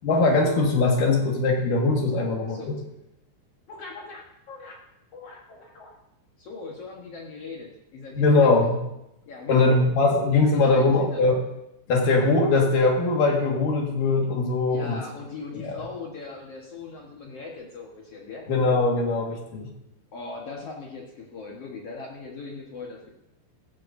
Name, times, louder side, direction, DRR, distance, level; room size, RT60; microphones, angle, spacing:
voice 1, 0.0-2.8 8.2-8.8 9.5-11.4 11.9-15.0 15.6-15.8 18.5-19.7, left 3 dB, 55° left, 0 dB, 3.0 m, -21 dB
voice 2, 3.7-4.8 5.1-5.9 6.4-8.6 9.3-9.7 10.4-11.3 14.7-18.4 20.1-23.1, left 4 dB, 85° left, -2 dB, 1.3 m, -39 dB
15.5 x 15.0 x 2.7 m, 0.85 s
omnidirectional pair, 5.1 m